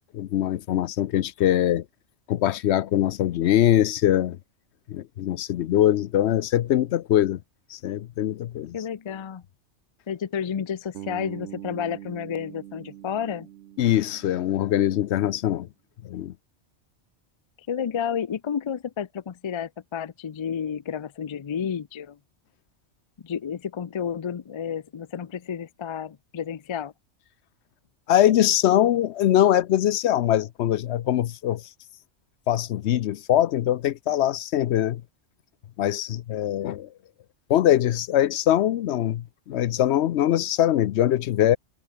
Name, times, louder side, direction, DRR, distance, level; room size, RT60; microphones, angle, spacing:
voice 1, 0.1-1.9 2.3-4.4 4.9-7.4 7.7-8.8 13.8-15.7 16.0-16.3 28.1-31.7 32.5-35.0 35.8-36.9 37.5-41.6, left 12 dB, 70° left, 0.9 m, -22 dB
voice 2, 8.7-9.4 10.1-13.5 17.7-22.2 23.2-26.9, left 8 dB, 45° left, 0.3 m, -31 dB
Bass guitar, 10.9-15.0, right 12 dB, 80° right, 0.9 m, -43 dB
omnidirectional pair, 1.2 m